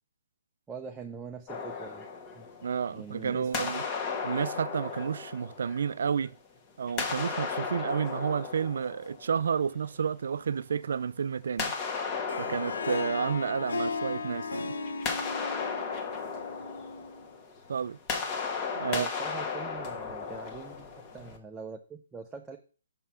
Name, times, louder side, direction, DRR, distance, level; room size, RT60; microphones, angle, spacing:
voice 1, 0.7-2.1 2.4-2.5 2.9-3.7 18.9-20.9 21.1-22.6, right 5 dB, 10° right, 0.6 m, -43 dB
sound 1, 1.5-3.1 3.5-6.3 6.9-9.8 11.6-14.4 14.7-21.4, left 5 dB, 25° left, 1.3 m, -35 dB
voice 2, 2.6-3.8 4.2-6.4 6.8-11.7 12.4-14.7 17.7-18.0 18.8-19.1, right 7 dB, 70° right, 0.4 m, -31 dB
Harp, 12.1-17.3, left 4 dB, 90° left, 1.2 m, -36 dB
5.9 x 5.5 x 5.6 m
hypercardioid pair, 155°, 0 cm